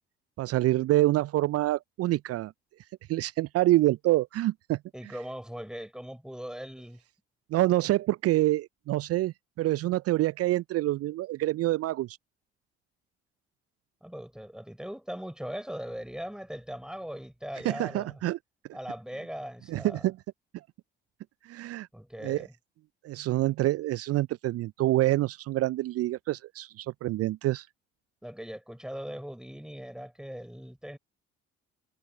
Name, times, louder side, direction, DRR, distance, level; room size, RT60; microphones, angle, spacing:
voice 1, 0.4-2.5 3.1-4.8 7.5-12.2 17.6-18.4 19.7-20.2 21.5-21.9 22.2-22.4 23.0-27.7, right 16 dB, 50° right, 0.6 m, -26 dB
voice 2, 4.9-7.0 14.0-18.2 18.7-20.1 21.9-22.5 28.2-31.0, equal, ahead, 6.0 m, -40 dB
figure-of-eight pair, 45°, 31 cm